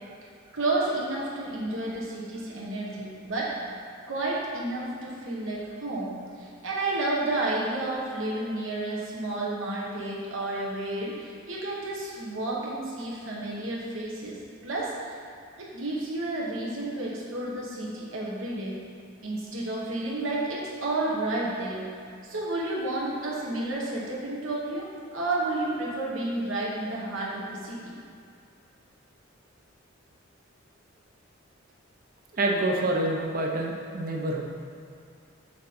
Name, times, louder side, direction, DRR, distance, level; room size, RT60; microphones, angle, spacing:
voice 1, 0.5-3.5 4.1-14.4 14.6-15.1 15.6-18.7 19.2-21.9 22.2-24.9 25.1-27.9, right 2 dB, 65° right, -5 dB, 1.2 m, -31 dB
voice 2, 32.3-34.4, right 2 dB, 45° right, 0 dB, 0.7 m, -27 dB
6.1 x 3.7 x 4.3 m, 2.4 s
head